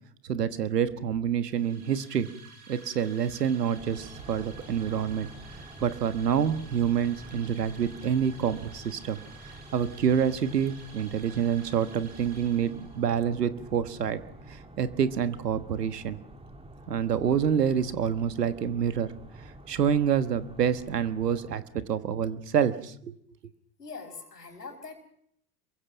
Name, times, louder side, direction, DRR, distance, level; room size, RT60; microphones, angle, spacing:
voice 1, 0.2-2.3 2.7-5.3 5.8-9.2 9.7-14.2 14.5-16.2 16.9-19.1 19.4-21.6 21.9-23.2, right 8 dB, 85° right, 12 dB, 1.4 m, -27 dB
sound 1, 1.4-13.2, right 4 dB, 70° right, 7.1 m, -51 dB
sound 2, 3.7-21.6, right 1 dB, 10° right, 2.6 m, -48 dB
voice 2, 23.8-25.0, left 4 dB, 90° left, 6 dB, 5.1 m, -42 dB
26.0 x 23.0 x 6.0 m, 0.72 s
hypercardioid pair, 80°, 47 cm